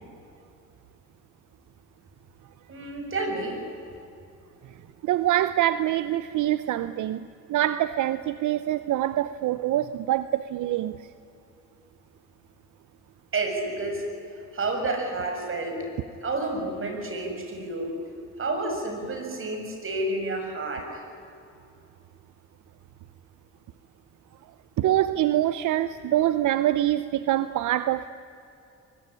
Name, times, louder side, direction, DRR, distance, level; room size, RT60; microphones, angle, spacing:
voice 1, 2.7-3.7 13.3-14.0 14.5-15.9 16.2-18.0 18.4-21.1, right 2 dB, 45° right, 4 dB, 6.9 m, -30 dB
voice 2, 5.0-11.0 24.8-28.1, right 13 dB, 80° right, 13 dB, 0.8 m, -25 dB
24.0 x 21.5 x 10.0 m, 2.6 s
cardioid pair, 90°, 30 cm